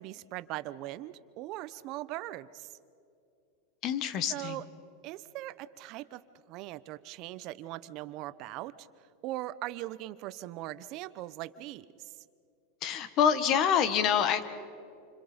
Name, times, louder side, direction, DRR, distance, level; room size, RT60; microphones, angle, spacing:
voice 1, 0.0-2.8 4.3-4.6 5.0-6.2 6.5-8.9 9.2-12.2, right 16 dB, 50° right, 14 dB, 0.9 m, -40 dB
voice 2, 3.8-4.5 12.8-14.4, left 8 dB, 45° left, 12 dB, 1.6 m, -26 dB
28.5 x 26.0 x 5.3 m, 2.5 s
supercardioid pair, 130°, 0 cm